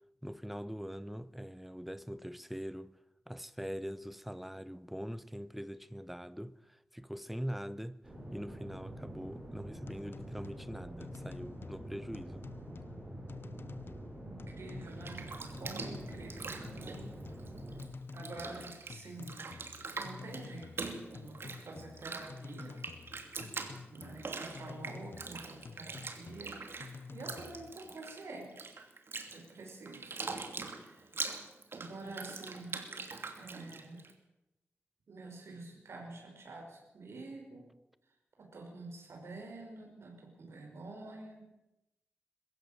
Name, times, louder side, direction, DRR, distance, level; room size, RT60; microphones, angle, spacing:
voice 1, 0.2-2.9 3.3-8.0 8.3-12.5, equal, 5° right, 0.8 m, -42 dB
sound 1, 8.0-17.8, right 1 dB, 25° right, 7.0 m, -46 dB
sound 2, 9.6-27.7, left 4 dB, 60° left, 0.8 m, -50 dB
voice 2, 14.2-17.1 18.1-19.5 20.0-22.7 23.9-28.8 29.3-30.2 30.7-31.5 31.7-32.9 33.3-34.0 35.1-37.7 38.4-41.5, right 2 dB, 80° right, 5.4 m, -48 dB
Bathtub (filling or washing), 14.8-17.9 18.1-34.1, right 4 dB, 60° right, 2.7 m, -43 dB
22.0 x 15.0 x 9.0 m
wide cardioid pair, 125°, 4 cm